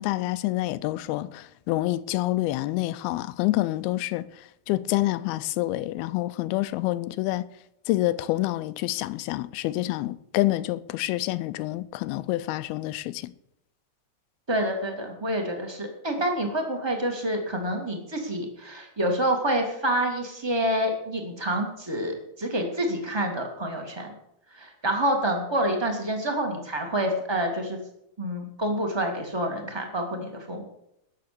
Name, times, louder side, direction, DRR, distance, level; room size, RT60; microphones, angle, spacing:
voice 1, 0.0-4.3 4.7-7.4 7.9-13.3, left 17 dB, 85° left, 2.5 m, -27 dB
voice 2, 14.5-24.1 24.5-27.8 28.2-30.7, right 1 dB, 20° right, 0.7 m, -27 dB
19.0 x 6.8 x 6.7 m
omnidirectional pair, 4.4 m